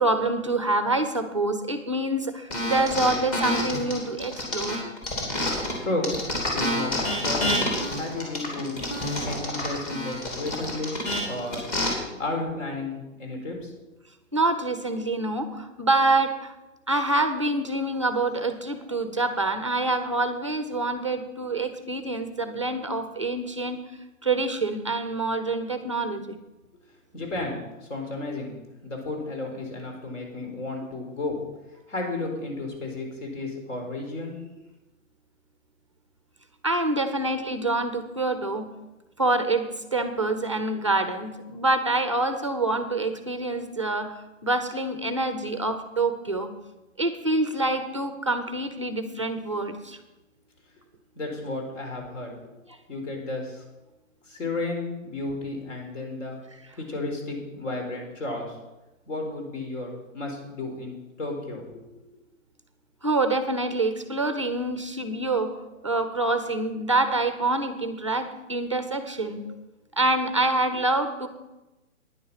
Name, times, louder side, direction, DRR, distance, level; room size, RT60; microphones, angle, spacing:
voice 1, 0.0-4.8 14.3-16.6 16.9-23.8 24.2-26.4 27.3-27.5 36.6-38.7 39.2-39.7 39.9-46.5 47.0-50.0 52.7-52.8 63.0-69.6 70.0-71.3, right 2 dB, 25° right, 8 dB, 0.4 m, -26 dB
sound 1, 2.5-5.7 6.0-11.9, left 1 dB, 25° left, 2.8 m, -28 dB
voice 2, 6.5-7.6 7.9-8.8 9.2-10.9 11.2-11.7 12.2-13.7 27.1-28.5 28.8-31.4 31.9-34.3 51.1-52.4 52.9-53.6 54.3-56.4 56.8-58.6 59.1-61.8, left 2 dB, 60° left, 2 dB, 4.4 m, -33 dB
10.0 x 9.8 x 6.1 m, 1.0 s
hypercardioid pair, 170°, 41 cm